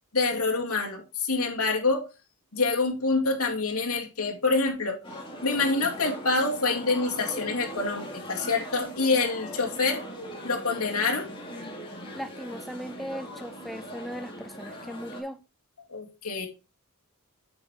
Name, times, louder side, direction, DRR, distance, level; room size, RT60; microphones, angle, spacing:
voice 1, 0.1-2.0 2.5-5.0 5.4-10.0 10.4-11.3 15.9-16.5, left 3 dB, 75° left, 0 dB, 2.6 m, -26 dB
sound 1, 5.0-15.2, equal, 25° left, 2.4 m, -40 dB
voice 2, 12.2-15.4, equal, ahead, 8 dB, 0.5 m, -38 dB
8.6 x 5.4 x 4.4 m, 0.28 s
head